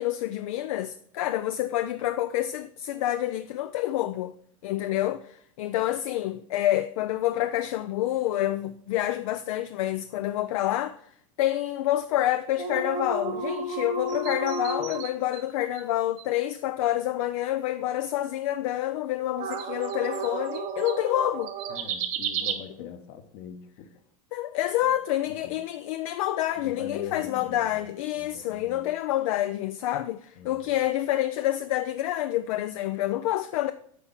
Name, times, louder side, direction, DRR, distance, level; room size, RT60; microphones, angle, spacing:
voice 1, 0.0-4.3 4.6-11.0 11.4-21.5 22.8-22.9 24.3-33.7, left 13 dB, 75° left, 0.4 m, -28 dB
sound 1, 12.6-15.4 15.8-15.9 16.2-16.3 19.4-22.5, right 5 dB, 50° right, 1.2 m, -32 dB
voice 2, 21.7-23.9 24.8-24.9 25.3-25.6 26.6-27.9 28.1-28.9 30.4-30.8, left 7 dB, 55° left, 1.1 m, -43 dB
8.3 x 4.4 x 5.6 m
hypercardioid pair, 105°, 18 cm